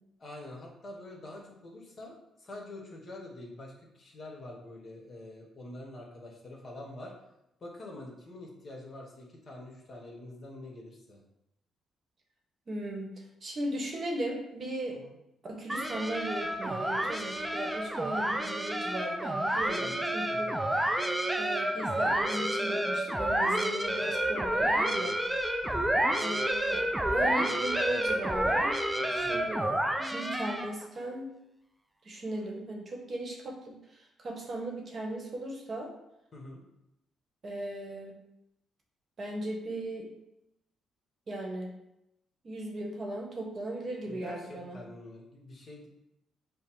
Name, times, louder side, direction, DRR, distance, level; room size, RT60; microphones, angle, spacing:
voice 1, 0.2-7.1 7.6-11.2 14.9-15.2 19.8-20.6 25.6-25.9 29.2-29.5 36.3-36.6 44.1-45.9, left 1 dB, 40° left, -1 dB, 1.1 m, -46 dB
voice 2, 12.7-13.1 13.4-15.0 15.4-20.5 21.4-25.2 26.2-26.9 27.1-28.8 29.1-29.8 30.1-31.3 32.0-35.9 37.4-38.2 39.2-40.1 41.3-41.7 42.4-44.8, right 1 dB, 45° right, 0 dB, 0.9 m, -37 dB
sound 1, 15.7-30.8, right 1 dB, 10° right, 0.4 m, -29 dB
5.1 x 2.0 x 4.4 m, 0.86 s
cardioid pair, 90°, 0 cm